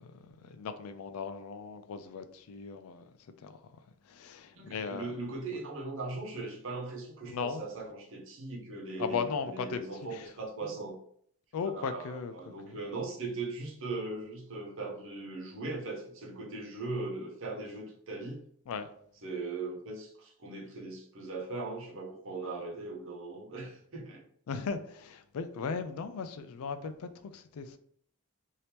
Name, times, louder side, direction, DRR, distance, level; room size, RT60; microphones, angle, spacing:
voice 1, 0.0-3.0 3.4-3.6 4.1-5.1 7.3-7.6 9.0-9.8 10.1-10.3 11.5-12.3 12.6-12.7 18.7-18.9 24.5-27.8, left 5 dB, 85° left, 0.4 m, -37 dB
voice 2, 4.5-10.9 11.6-18.4 19.2-24.2, right 3 dB, 65° right, 0.8 m, -39 dB
2.9 x 2.7 x 3.3 m
head